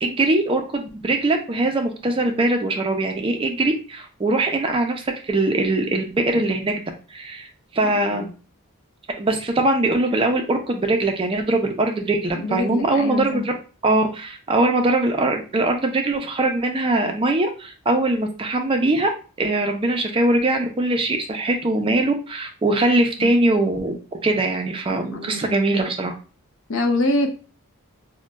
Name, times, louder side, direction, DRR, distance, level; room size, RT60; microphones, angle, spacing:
voice 1, 0.0-6.8 7.1-7.5 7.7-8.2 9.2-13.5 13.8-19.1 19.4-24.0 24.2-26.1, right 2 dB, 25° right, 4 dB, 0.4 m, -21 dB
voice 2, 7.8-8.3 12.3-13.5 23.2-23.3 24.9-25.7 26.7-27.3, left 2 dB, 60° left, 4 dB, 0.5 m, -25 dB
2.3 x 2.1 x 3.9 m, 0.36 s
head